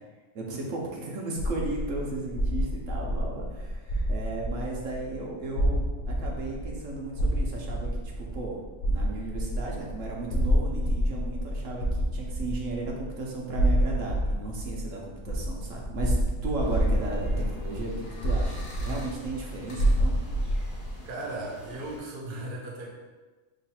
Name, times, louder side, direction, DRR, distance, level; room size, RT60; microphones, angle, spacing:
voice 1, 0.3-7.9 8.2-8.6 8.9-18.6 18.8-20.2, right 2 dB, 75° right, -2 dB, 1.0 m, -35 dB
sound 1, 1.4-21.0, equal, 80° left, 0.4 m, -28 dB
sound 2, 16.6-22.0, left 1 dB, 45° left, 0.9 m, -46 dB
voice 2, 21.1-22.9, right 2 dB, 55° right, -1 dB, 0.7 m, -36 dB
3.0 x 2.4 x 4.1 m, 1.2 s
omnidirectional pair, 1.4 m